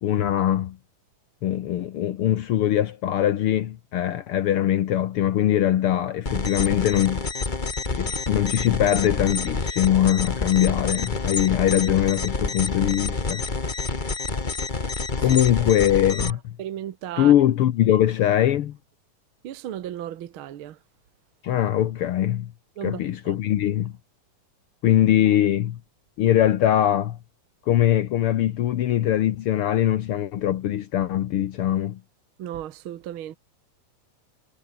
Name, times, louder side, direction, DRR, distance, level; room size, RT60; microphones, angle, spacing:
voice 1, 0.0-0.8 1.4-7.3 7.9-13.4 13.9-14.1 15.2-16.6 17.2-18.8 21.4-22.5 22.8-23.9 24.8-25.8 26.2-27.2 27.7-32.0, left 11 dB, 80° left, 1.2 m, -22 dB
sound 1, 6.2-16.3, left 3 dB, 35° left, 0.7 m, -28 dB
voice 2, 16.2-17.3 17.9-18.0 19.4-20.8 22.8-23.3 32.4-33.3, right 11 dB, 65° right, 1.3 m, -35 dB
omnidirectional pair, 3.9 m